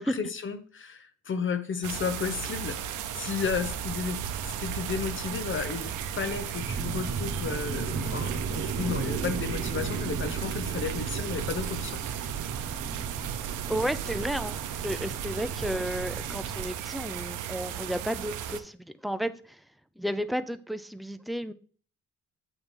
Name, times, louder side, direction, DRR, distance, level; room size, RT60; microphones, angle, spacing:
voice 1, 0.0-4.2 4.6-12.0, left 6 dB, 40° left, 10 dB, 0.8 m, -33 dB
sound 1, 1.8-18.6, right 9 dB, 85° right, 0.7 m, -36 dB
sound 2, 3.4-16.6, right 5 dB, 60° right, 1.0 m, -36 dB
voice 2, 13.7-19.6 20.0-21.5, equal, ahead, 11 dB, 0.4 m, -33 dB
8.0 x 2.8 x 5.3 m, 0.44 s
cardioid pair, 90°, 30 cm